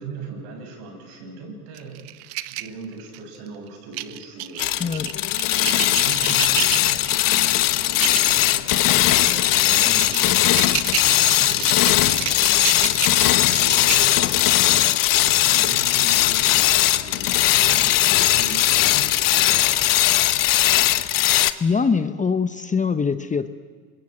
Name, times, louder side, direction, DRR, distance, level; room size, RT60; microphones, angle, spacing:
voice 1, 0.0-2.1 2.5-5.0 5.5-7.0 7.8-10.5 11.0-14.4 15.2-20.1, right 3 dB, 70° right, 3 dB, 7.2 m, -39 dB
sound 1, 1.8-3.4 3.9-7.2 7.8-8.3 8.7-8.9 9.4-14.4, right 18 dB, 55° right, 0.9 m, -30 dB
sound 2, 4.6-21.5, left 15 dB, 45° left, 1.0 m, -19 dB
voice 2, 4.8-5.1 21.6-23.5, left 5 dB, 15° left, 11 dB, 0.9 m, -22 dB
27.0 x 22.0 x 8.0 m, 1.5 s
supercardioid pair, 105°, 47 cm